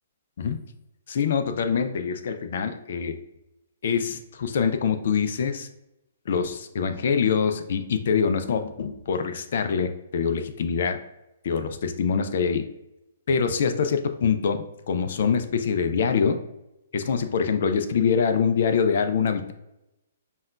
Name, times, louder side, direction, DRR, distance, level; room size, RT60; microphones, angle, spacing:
voice 1, 1.1-3.2 3.8-5.7 6.3-11.0 11.4-12.7 13.3-16.4 16.9-19.5, left 6 dB, 50° left, 7 dB, 0.4 m, -24 dB
5.3 x 2.3 x 2.3 m, 0.91 s
figure-of-eight pair, 120°, 0 cm